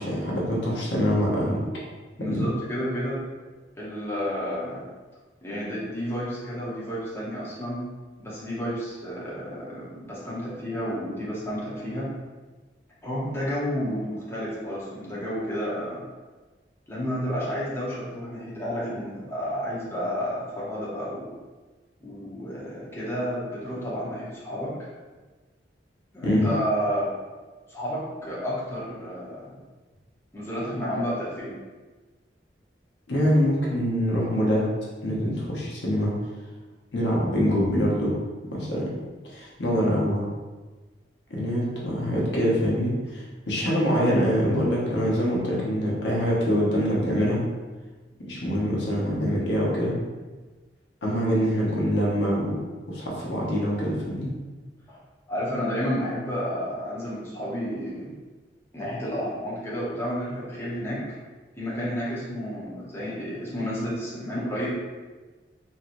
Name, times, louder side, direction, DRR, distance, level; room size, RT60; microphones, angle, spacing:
voice 1, 0.0-1.6 2.3-2.5 26.2-26.5 33.1-34.7 35.0-36.1 36.9-38.2 38.5-38.9 39.3-40.2 41.3-47.5 48.2-50.0 51.0-54.3, equal, 80° left, -4 dB, 0.8 m, -24 dB
voice 2, 2.1-3.2 3.8-4.9 5.4-7.8 8.2-12.1 13.0-16.0 16.9-21.3 22.0-24.7 26.1-27.1 27.7-29.6 30.3-31.5 54.9-55.0 55.3-58.1 58.7-61.0 61.6-64.7, equal, 15° left, -8 dB, 0.8 m, -31 dB
2.9 x 2.8 x 2.5 m, 1.3 s
head